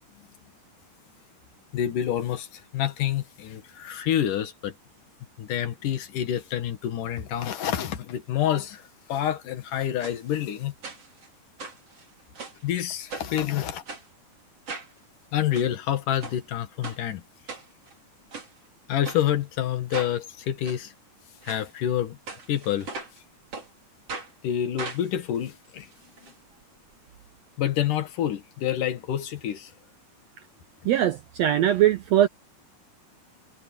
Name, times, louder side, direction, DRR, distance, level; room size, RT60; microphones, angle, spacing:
voice 1, 1.7-4.7 5.4-8.8 9.1-10.7 12.6-13.8 15.3-17.2 18.9-20.9 21.4-22.2 22.5-22.9 24.4-25.9 26.2-26.3 27.6-29.7, left 11 dB, 75° left, 3.1 m, -28 dB
sound 1, 10.0-10.2 10.8-11.3 11.6-12.6 13.1-13.4 13.9-14.1 14.7-14.9 15.4-15.7 16.2-16.4 16.8-17.0 17.5-17.9 18.3-18.5 19.0-19.2 19.9-20.1 20.6-20.8 21.4-21.6 22.3-23.2 23.5-23.7 24.1-24.3 24.8-26.3 26.6-26.7 26.9-27.0, right 4 dB, 45° right, 5.2 m, -38 dB
voice 2, 30.8-32.3, right 12 dB, 80° right, 1.5 m, -21 dB
omnidirectional pair, 3.8 m